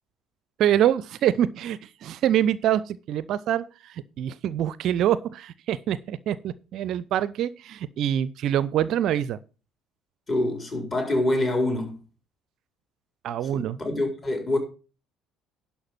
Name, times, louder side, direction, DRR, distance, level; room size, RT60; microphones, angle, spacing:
voice 1, 0.6-9.4 13.2-13.8, right 11 dB, 50° right, 0.5 m, -25 dB
voice 2, 10.3-12.0 13.5-14.6, left 1 dB, 30° left, 4.0 m, -25 dB
11.5 x 5.6 x 5.8 m
figure-of-eight pair, 55°, 0 cm